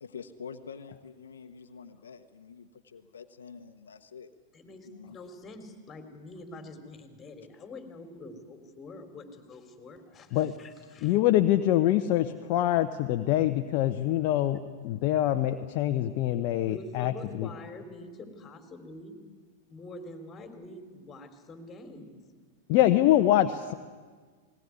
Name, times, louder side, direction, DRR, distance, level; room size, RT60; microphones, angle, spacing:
voice 1, 0.0-4.3 4.8-5.2, left 6 dB, 80° left, 7 dB, 1.1 m, -46 dB
voice 2, 4.5-11.2 16.7-19.2 19.7-22.2, left 2 dB, 25° left, 6 dB, 3.6 m, -45 dB
voice 3, 11.0-17.5 22.7-23.7, left 13 dB, 50° left, 7 dB, 0.9 m, -25 dB
19.5 x 19.0 x 9.7 m, 1.5 s
hypercardioid pair, 105°, 0 cm